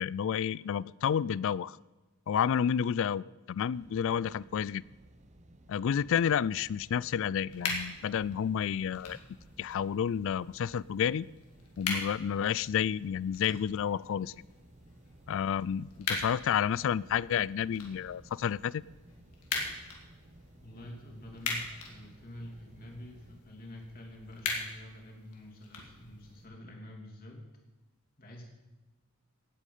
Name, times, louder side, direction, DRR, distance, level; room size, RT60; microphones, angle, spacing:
voice 1, 0.0-1.8 2.3-4.8 5.7-9.2 9.6-11.3 11.8-14.3 15.3-18.8, left 8 dB, 60° left, 22 dB, 0.3 m, -30 dB
sound 1, 3.7-23.4, right 1 dB, 30° right, 0.9 m, -57 dB
sound 2, 7.5-26.5, left 4 dB, 90° left, 2.7 m, -42 dB
voice 2, 20.6-27.4 28.2-28.4, left 1 dB, 40° left, 0 dB, 2.9 m, -47 dB
17.5 x 8.3 x 5.6 m, 1.1 s
head